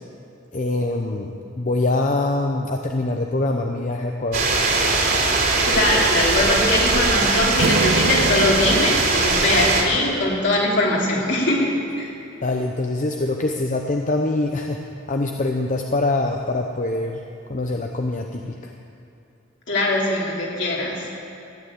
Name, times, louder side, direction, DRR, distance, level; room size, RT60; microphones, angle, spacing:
voice 1, 0.5-4.4 12.4-14.8 15.1-17.2 17.5-18.7, left 2 dB, 40° left, 2 dB, 0.7 m, -24 dB
sound 1, 4.3-9.8, right 3 dB, 50° right, 3.4 m, -20 dB
voice 2, 5.6-12.1 19.7-21.1, left 1 dB, 65° left, -3 dB, 3.3 m, -21 dB
Strum, 7.6-11.5, right 3 dB, 70° right, 0.7 m, -29 dB
14.5 x 9.7 x 8.4 m, 2.6 s
head